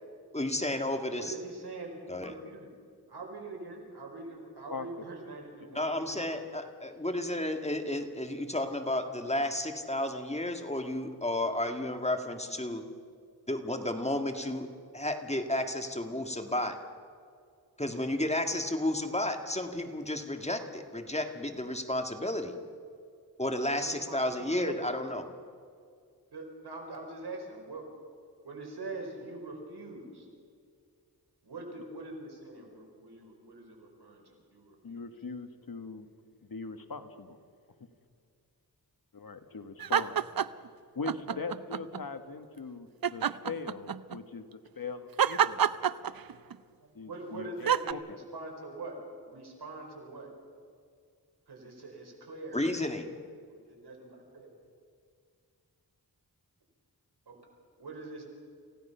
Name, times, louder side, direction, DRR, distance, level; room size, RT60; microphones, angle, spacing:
voice 1, 0.3-1.4 2.1-2.4 5.7-12.8 13.5-16.8 17.8-22.6 23.4-25.3 52.5-53.1, left 1 dB, 15° left, 6 dB, 1.8 m, -32 dB
voice 2, 1.2-2.7 3.1-6.3 16.3-16.5 23.8-24.2 24.6-24.9 26.3-27.9 28.4-30.3 31.4-35.0 41.3-41.4 47.0-49.0 49.3-50.3 51.5-52.6 53.5-54.5 57.3-57.4 57.8-58.2, right 2 dB, 85° right, 1 dB, 4.8 m, -43 dB
voice 3, 34.8-36.1 36.4-37.4 39.1-40.2 40.9-44.4 44.8-45.6 46.9-48.0, left 4 dB, 60° left, 8 dB, 1.6 m, -41 dB
sound 1, 39.8-40.7 41.0-42.0 43.0-44.2 45.2-46.6 47.7-47.9, right 8 dB, 65° right, 0.7 m, -27 dB
28.0 x 16.5 x 5.7 m, 2.3 s
wide cardioid pair, 65°, 39 cm